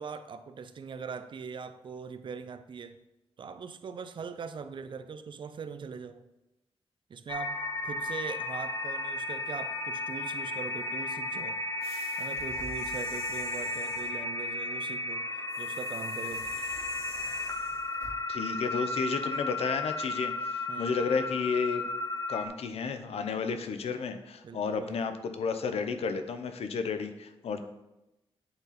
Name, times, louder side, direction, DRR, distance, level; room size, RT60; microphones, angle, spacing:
voice 1, 0.0-3.0 3.4-6.3 7.1-11.6 12.2-15.3 15.6-16.5 20.7-20.9 24.4-25.0, right 5 dB, 55° right, 11 dB, 0.4 m, -41 dB
sound 1, 7.3-22.5, left 2 dB, 35° left, 0.7 m, -34 dB
sound 2, 11.8-14.2 15.5-18.1, right 2 dB, 80° right, 1.7 m, -47 dB
voice 2, 18.3-21.8 22.3-27.6, left 5 dB, 85° left, 9 dB, 0.6 m, -32 dB
8.7 x 4.1 x 4.1 m, 0.95 s
wide cardioid pair, 145°, 10 cm